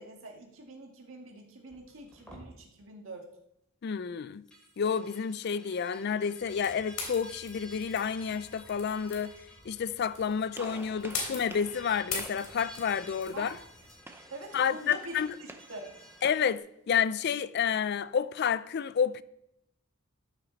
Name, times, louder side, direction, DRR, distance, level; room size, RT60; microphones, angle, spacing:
voice 1, 0.0-3.3 13.3-13.6 14.3-15.9, right 2 dB, 70° right, 1.8 m, -45 dB
sound 1, 1.7-2.5 4.3-16.4, equal, 5° left, 2.6 m, -53 dB
voice 2, 3.8-4.5 4.8-9.3 9.7-13.6 14.5-15.3 16.2-19.2, left 7 dB, 50° left, 0.4 m, -30 dB
sound 2, 6.4-13.9, left 4 dB, 75° left, 3.3 m, -42 dB
Gunshot gunfire, 10.5-16.6, right 2 dB, 10° right, 0.6 m, -50 dB
13.5 x 5.9 x 4.0 m
head